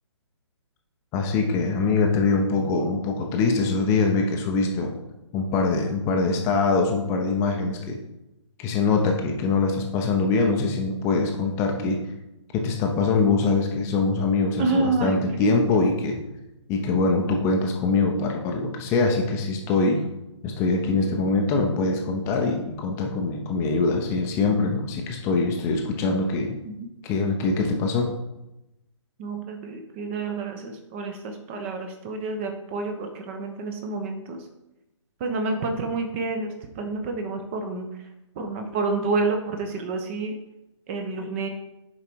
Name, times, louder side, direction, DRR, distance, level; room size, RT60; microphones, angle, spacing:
voice 1, 1.1-5.0 5.3-8.0 8.6-12.0 12.5-16.2 16.7-20.0 20.4-26.6 27.0-28.1, left 3 dB, 15° left, 2 dB, 0.7 m, -23 dB
voice 2, 14.6-15.5 26.6-26.8 29.2-34.4 35.2-37.9 38.4-40.3 40.9-41.5, right 3 dB, 25° right, 5 dB, 0.8 m, -29 dB
6.7 x 4.9 x 4.6 m, 0.93 s
figure-of-eight pair, 135°, 16 cm